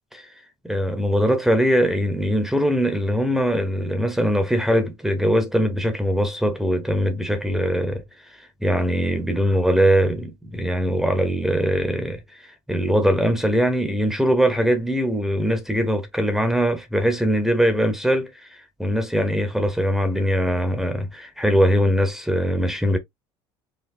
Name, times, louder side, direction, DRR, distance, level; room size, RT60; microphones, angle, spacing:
voice 1, 0.1-23.0, equal, 5° right, 0.9 m, -22 dB
4.8 x 2.9 x 2.6 m
supercardioid pair, 85°, 13 cm